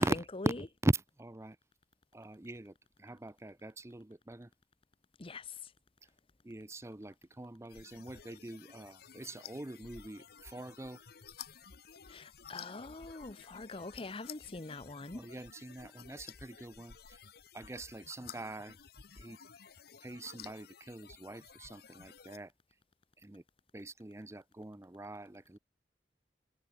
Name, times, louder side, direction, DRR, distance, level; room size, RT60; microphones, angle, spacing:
voice 1, 0.5-1.6 2.1-2.7 3.0-4.5 6.4-11.0 15.1-17.2 17.5-18.7 19.2-19.4 20.0-22.5 23.2-23.4 23.7-25.6, right 1 dB, 15° right, 0.6 m, -41 dB
sound 1, 7.7-22.4, left 7 dB, 60° left, 1.0 m, -53 dB
voice 2, 12.1-15.2, left 3 dB, 30° left, 0.9 m, -44 dB
head